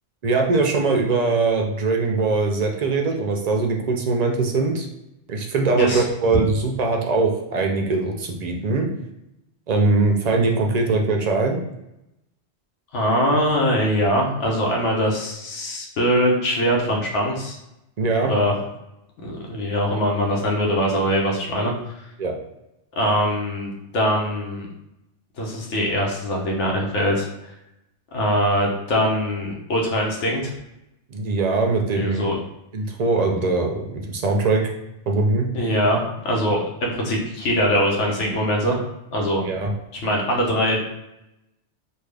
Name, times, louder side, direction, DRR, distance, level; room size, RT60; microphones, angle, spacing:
voice 1, 0.2-4.9 5.3-8.9 9.7-11.6 18.0-18.3 22.2-22.3 31.1-32.3 32.7-34.7 35.1-35.5 39.4-39.7, right 3 dB, 55° right, 2 dB, 0.5 m, -21 dB
voice 2, 12.9-17.6 18.2-18.6 19.2-21.7 23.0-24.7 25.4-27.3 28.1-30.5 31.9-32.4 35.5-38.8 39.1-39.4 40.0-40.8, equal, 85° left, -1 dB, 1.2 m, -22 dB
3.5 x 2.3 x 3.3 m, 0.87 s
omnidirectional pair, 1.2 m